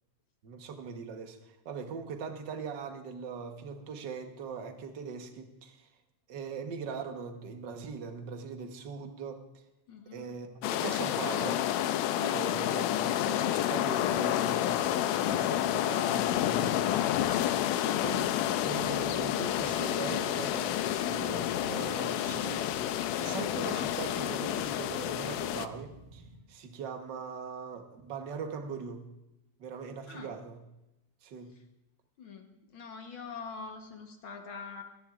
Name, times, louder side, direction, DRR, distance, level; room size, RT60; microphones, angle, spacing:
voice 1, 0.4-5.9 6.3-9.6 10.1-11.6 12.2-17.6 17.8-18.3 18.6-29.1 29.6-30.6 31.2-31.5, right 5 dB, 60° right, 5 dB, 1.1 m, -41 dB
voice 2, 9.9-10.3 30.1-30.3 32.2-34.8, left 5 dB, 60° left, 4 dB, 1.4 m, -44 dB
sound 1, 10.6-25.7, left 12 dB, 80° left, 1.6 m, -29 dB
sound 2, 17.9-26.4, right 1 dB, 90° right, 6.0 m, -50 dB
28.0 x 10.5 x 2.4 m, 0.94 s
omnidirectional pair, 3.5 m